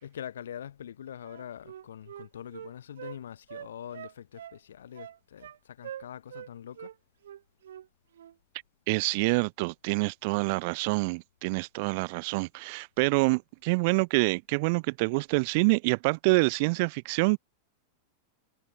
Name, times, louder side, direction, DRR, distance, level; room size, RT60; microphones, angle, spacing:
voice 1, 0.0-6.9, left 9 dB, 65° left, 2.1 m, -43 dB
Wind instrument woodwind instrument, 1.2-3.2 3.5-4.6 4.9-5.6 5.8-6.5 6.7-6.9 7.2-7.9 8.1-8.3, right 10 dB, 60° right, 1.2 m, -44 dB
voice 2, 8.9-17.4, right 28 dB, 45° right, 0.4 m, -26 dB
figure-of-eight pair, 90°, 0 cm